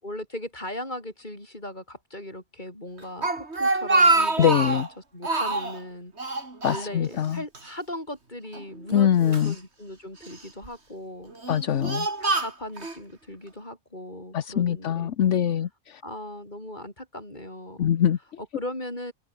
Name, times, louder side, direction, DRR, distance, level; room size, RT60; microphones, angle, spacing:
voice 1, 0.0-4.8 5.1-6.1 6.6-11.3 12.2-15.1 16.0-17.9 18.4-19.1, left 1 dB, 40° left, 8.2 m, -38 dB
Speech, 3.0-4.9 5.2-5.8 6.2-7.3 7.5-7.7 8.5-9.5 10.2-10.7 11.3-13.0, right 3 dB, 60° right, 3.7 m, -25 dB
voice 2, 4.4-4.9 6.6-7.4 8.9-9.6 11.5-12.1 14.3-16.0 17.8-18.2, left 9 dB, 75° left, 1.2 m, -23 dB
open air
omnidirectional pair, 1.3 m